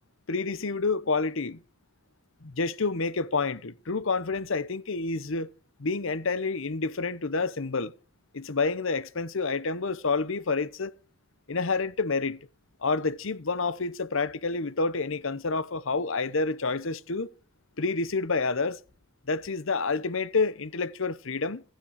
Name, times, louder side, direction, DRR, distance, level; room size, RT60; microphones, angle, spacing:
voice 1, 0.3-1.6 2.4-5.5 5.8-7.9 8.3-10.9 11.5-12.4 12.8-17.3 17.8-18.8 19.3-21.6, left 4 dB, 60° left, 0.8 m, -28 dB
15.0 x 10.5 x 6.4 m
head